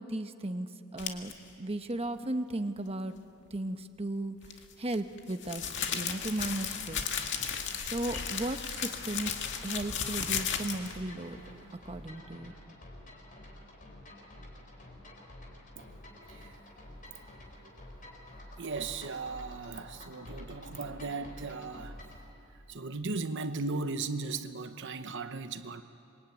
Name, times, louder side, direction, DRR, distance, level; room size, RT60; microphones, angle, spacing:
voice 1, 0.0-3.1 3.5-5.6 5.9-7.1 7.8-9.3 9.6-11.4 11.8-12.5, right 1 dB, 30° right, 7 dB, 1.0 m, -36 dB
sound 1, 1.0-1.3 4.4-11.0, left 7 dB, 60° left, 2.1 m, -35 dB
sound 2, 6.3-22.2, left 1 dB, 40° left, 4.9 m, -49 dB
voice 2, 16.2-16.6 17.6-17.7 18.6-22.0 22.5-25.8, right 3 dB, 60° right, 9 dB, 1.0 m, -37 dB
26.5 x 23.5 x 9.2 m, 2.6 s
head